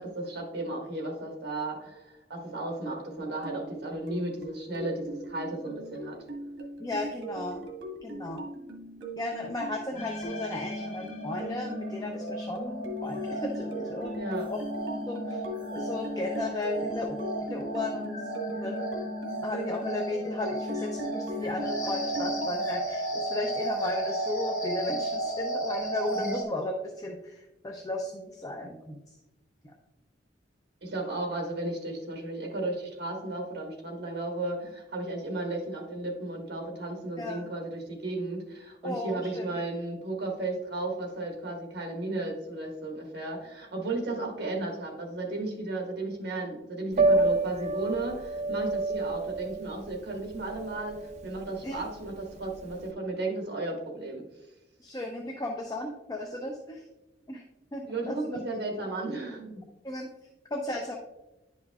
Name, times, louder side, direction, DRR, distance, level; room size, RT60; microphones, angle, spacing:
voice 1, 0.0-6.2 14.1-14.5 26.1-26.3 30.8-54.2 57.9-59.6, right 2 dB, 60° right, 0 dB, 1.6 m, -34 dB
sound 1, 3.2-22.5, right 1 dB, 85° right, 1.2 m, -40 dB
voice 2, 6.8-7.7 8.0-8.5 9.2-14.2 14.5-14.6 14.9-15.4 15.7-18.2 18.5-18.8 19.4-29.0 37.2-37.5 38.8-39.5 47.1-47.2 51.6-51.8 54.8-56.8 57.3-57.4 57.7-58.3 59.8-60.1 60.5-61.0, left 2 dB, 20° left, 1 dB, 0.6 m, -35 dB
sound 2, 10.0-26.4, right 1 dB, 45° left, 1.2 m, -34 dB
Piano, 46.9-52.9, right 2 dB, 40° right, 0.6 m, -29 dB
10.5 x 5.4 x 2.3 m, 0.99 s
head